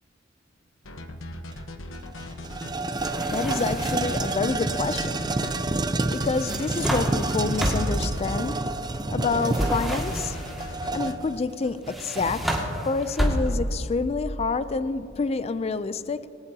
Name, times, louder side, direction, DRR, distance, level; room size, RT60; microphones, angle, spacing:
sound 1, 0.9-2.7 3.7-5.6 6.5-8.4 9.3-11.2, left 1 dB, 80° left, 1.1 m, -40 dB
sound 2, 1.5-1.6 1.9-12.6, right 2 dB, 20° right, 0.6 m, -29 dB
sound 3, 3.0-4.2 6.2-8.1 9.5-10.7 11.8-13.8, equal, ahead, 2.0 m, -29 dB
voice 1, 3.3-5.2 5.8-8.8 9.1-10.4 10.9-12.6 12.9-16.3, left 4 dB, 30° left, 14 dB, 0.4 m, -28 dB
20.0 x 18.5 x 2.8 m, 3.0 s
head